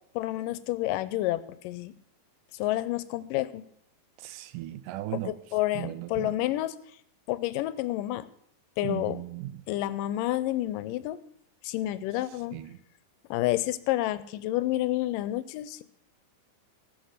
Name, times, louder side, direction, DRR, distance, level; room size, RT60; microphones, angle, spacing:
voice 1, 0.2-1.9 2.5-3.6 5.3-6.7 7.3-8.3 8.8-9.2 9.7-11.2 11.6-12.5 13.3-15.8, left 15 dB, 85° left, 15 dB, 2.2 m, -29 dB
voice 2, 4.2-5.4 5.7-6.4 8.8-9.6 12.3-12.8, right 15 dB, 80° right, 14 dB, 2.1 m, -37 dB
14.0 x 7.7 x 6.5 m, 0.71 s
omnidirectional pair, 3.9 m